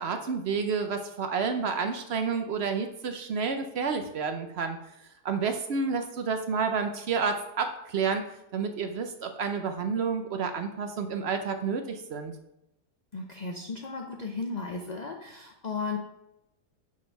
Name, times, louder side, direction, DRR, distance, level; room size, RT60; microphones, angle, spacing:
voice 1, 0.0-4.8 5.2-8.2 8.5-12.3, right 5 dB, 60° right, 7 dB, 0.7 m, -30 dB
voice 2, 13.1-16.0, left 4 dB, 60° left, 2 dB, 0.4 m, -35 dB
6.1 x 4.4 x 5.8 m, 0.86 s
omnidirectional pair, 1.7 m